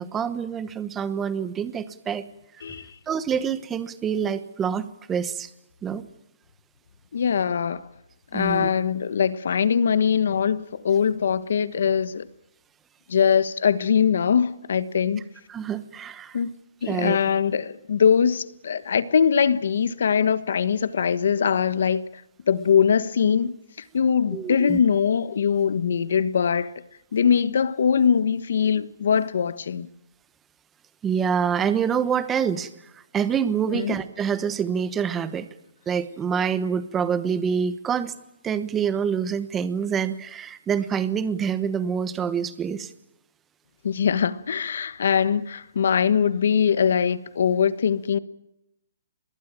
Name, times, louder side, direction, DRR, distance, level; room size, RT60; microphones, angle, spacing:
voice 1, 0.0-2.2 3.1-5.5 5.8-6.0 8.3-8.7 15.5-16.4 16.9-17.2 24.3-24.8 31.0-35.5 35.9-38.1 38.4-42.9, right 7 dB, 10° right, 1.1 m, -26 dB
voice 2, 2.6-2.9 7.1-7.9 8.3-12.3 13.1-15.3 16.3-16.5 16.8-22.0 22.5-23.6 23.9-26.8 27.1-29.9 33.7-34.0 43.8-48.2, left 7 dB, 60° left, 1.3 m, -22 dB
24.5 x 21.0 x 9.0 m
hypercardioid pair, 170°, 0 cm